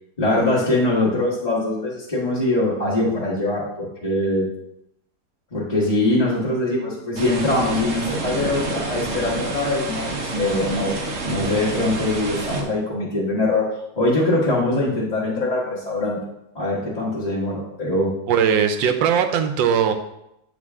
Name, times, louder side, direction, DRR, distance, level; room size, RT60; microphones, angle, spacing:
voice 1, 0.2-4.5 5.5-10.9 11.2-13.7 14.0-16.2 16.5-18.1, left 2 dB, 20° left, -9 dB, 1.6 m, -22 dB
sound 1, 7.2-12.6, right 2 dB, 45° right, 1.0 m, -28 dB
voice 2, 18.3-19.9, right 7 dB, 85° right, 8 dB, 1.4 m, -19 dB
9.4 x 4.2 x 3.6 m, 0.82 s
omnidirectional pair, 1.9 m